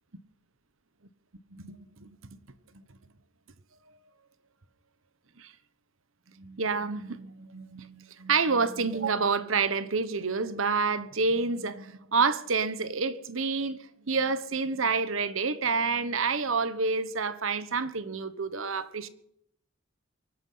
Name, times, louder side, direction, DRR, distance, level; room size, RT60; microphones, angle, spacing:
voice 1, 1.5-2.1 5.4-5.5 6.4-13.8 14.1-19.1, right 4 dB, 80° right, 1.2 m, -28 dB
24.0 x 9.8 x 5.6 m
head